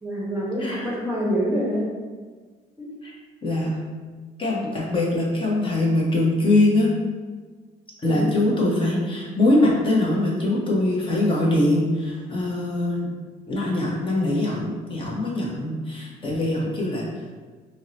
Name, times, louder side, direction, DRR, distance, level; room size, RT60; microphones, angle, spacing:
voice 1, 0.0-1.9 2.8-2.9 8.0-8.2, equal, 15° right, -4 dB, 0.7 m, -26 dB
voice 2, 0.6-0.9 3.0-3.1 3.4-3.8 4.4-6.9 8.0-13.1 13.5-17.1, left 2 dB, 30° left, -4 dB, 0.8 m, -22 dB
2.6 x 2.0 x 4.0 m, 1.4 s
cardioid pair, 110°, 17 cm